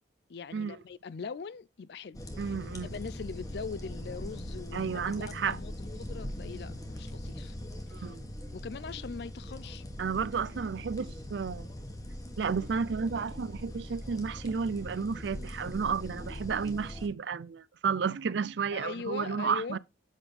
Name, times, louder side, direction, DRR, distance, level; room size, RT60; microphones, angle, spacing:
voice 1, 0.3-2.5 2.9-7.6 7.9-8.1 8.5-9.8 18.7-19.8, left 5 dB, 60° left, 0.4 m, -41 dB
sound 1, 2.1-17.1, left 1 dB, 20° left, 1.3 m, -41 dB
voice 2, 2.4-2.9 4.7-5.6 7.9-8.2 10.0-11.7 12.4-19.8, right 6 dB, 65° right, 0.4 m, -32 dB
8.2 x 5.9 x 3.2 m
head